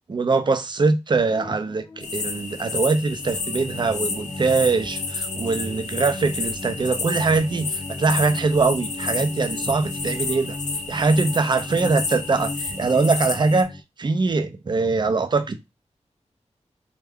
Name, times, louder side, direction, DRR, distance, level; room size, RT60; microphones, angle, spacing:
voice 1, 0.1-10.6 10.9-13.7 14.0-15.6, right 4 dB, 40° right, 0.5 m, -22 dB
sound 1, 1.3-13.8, left 2 dB, 30° left, 0.4 m, -37 dB
sound 2, 2.0-13.6, left 4 dB, 85° left, 0.6 m, -31 dB
3.3 x 2.2 x 3.5 m
wide cardioid pair, 80°, 12 cm